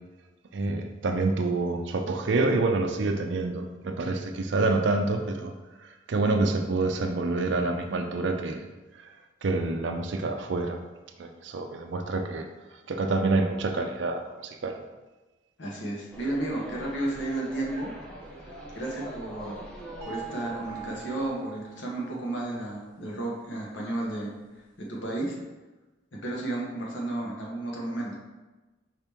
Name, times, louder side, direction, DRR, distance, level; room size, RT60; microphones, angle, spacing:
voice 1, 0.5-5.5 6.1-8.7 9.0-9.1 9.4-10.8 11.2-12.5 12.9-14.8, right 3 dB, 65° right, 5 dB, 0.5 m, -27 dB
voice 2, 15.6-17.9 18.7-19.6 20.0-24.3 24.8-25.4 26.2-28.2, right 1 dB, 70° left, -3 dB, 1.1 m, -32 dB
sound 1, 16.1-21.3, right 1 dB, 5° left, 0.7 m, -43 dB
sound 2, 20.0-22.2, right 10 dB, 15° right, 1.0 m, -42 dB
4.8 x 2.9 x 3.4 m, 1.2 s
head